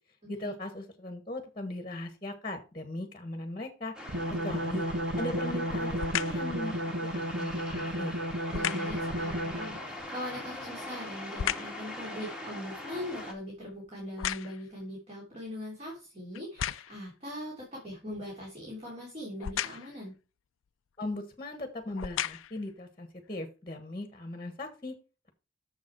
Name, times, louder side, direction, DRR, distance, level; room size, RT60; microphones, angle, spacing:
voice 1, 0.3-3.9 4.4-4.9 5.1-6.7 7.0-8.2 21.0-25.0, left 2 dB, 25° left, 7 dB, 1.3 m, -38 dB
sound 1, 3.9-13.3, left 1 dB, 5° right, 1.7 m, -42 dB
sound 2, 4.1-9.8, equal, 90° right, 1.3 m, -33 dB
sound 3, 4.9-5.2 6.0-6.5 8.5-9.0 10.4-11.8 12.3-14.8 15.5-15.6 16.3-17.1 19.4-20.0 21.0-21.2 21.8-22.7 23.3-23.4, left 10 dB, 80° left, 0.4 m, -35 dB
voice 2, 8.5-20.1, equal, 30° right, -3 dB, 3.3 m, -41 dB
7.4 x 6.9 x 4.5 m, 0.32 s
head